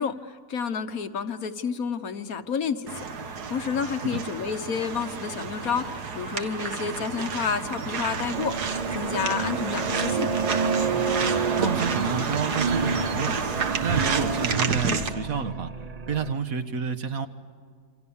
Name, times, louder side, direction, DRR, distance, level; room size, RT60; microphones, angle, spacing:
voice 1, 0.0-10.3, left 6 dB, 65° left, 8 dB, 1.5 m, -30 dB
sound 1, 2.9-15.1, right 5 dB, 90° right, 2.0 m, -30 dB
sound 2, 8.3-16.3, right 5 dB, 35° right, 0.6 m, -30 dB
voice 2, 11.6-13.4 13.8-15.7 16.1-17.3, right 6 dB, 65° right, 9 dB, 1.7 m, -29 dB
28.0 x 26.0 x 7.2 m, 2.1 s
omnidirectional pair, 1.6 m